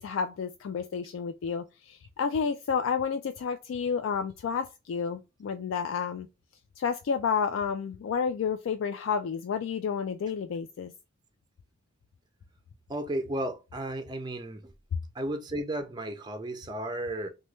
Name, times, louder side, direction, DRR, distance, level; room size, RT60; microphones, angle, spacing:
voice 1, 0.0-6.3 6.8-10.9, left 6 dB, 90° left, 0.3 m, -30 dB
voice 2, 12.9-14.7 15.1-17.3, right 1 dB, 20° right, 0.4 m, -34 dB
3.0 x 2.2 x 3.1 m
head